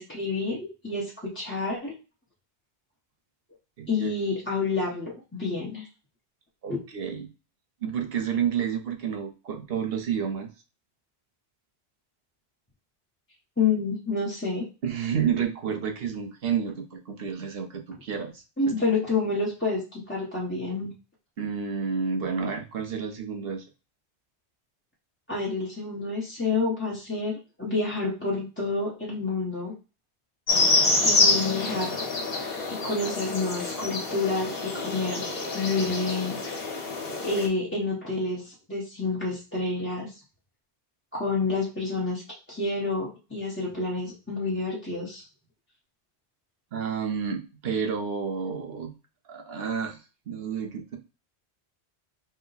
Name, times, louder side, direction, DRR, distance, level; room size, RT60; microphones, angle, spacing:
voice 1, 0.0-1.9 3.9-5.9 6.7-6.8 13.6-14.7 18.6-20.9 25.3-29.7 31.0-32.0 32.7-35.3 35.5-36.4 37.2-40.1 41.1-42.2 42.5-45.2, left 3 dB, 10° left, -6 dB, 0.9 m, -29 dB
voice 2, 3.8-4.1 6.6-7.3 7.8-10.5 14.8-18.4 21.4-23.6 46.7-48.9 49.3-50.0 50.3-51.0, right 7 dB, 65° right, 5 dB, 0.9 m, -30 dB
sound 1, 30.5-37.5, left 3 dB, 60° left, 1.3 m, -26 dB
4.2 x 2.2 x 3.9 m, 0.31 s
omnidirectional pair, 1.1 m